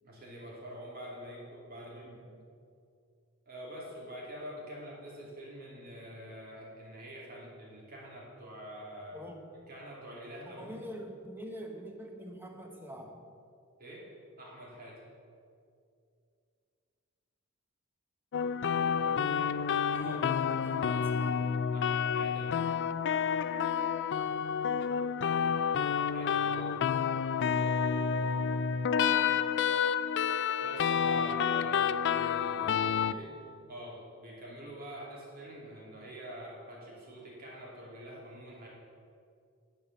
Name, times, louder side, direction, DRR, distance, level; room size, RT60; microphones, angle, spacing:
voice 1, 0.0-2.2 3.5-9.3 9.7-10.8 13.8-14.0 14.4-15.0 19.4-19.5 20.0-20.3 21.7-22.5 25.8-26.9 30.6-32.5 33.1-33.4 33.7-38.7, equal, 45° right, -4 dB, 2.8 m, -45 dB
voice 2, 1.8-2.4 9.1-9.4 10.4-13.3 18.8-21.6 28.0-28.9 32.5-33.2, equal, 10° right, 2 dB, 1.1 m, -46 dB
sound 1, 18.3-33.1, left 7 dB, 55° left, 0.4 m, -29 dB
10.5 x 5.3 x 7.4 m, 2.4 s
head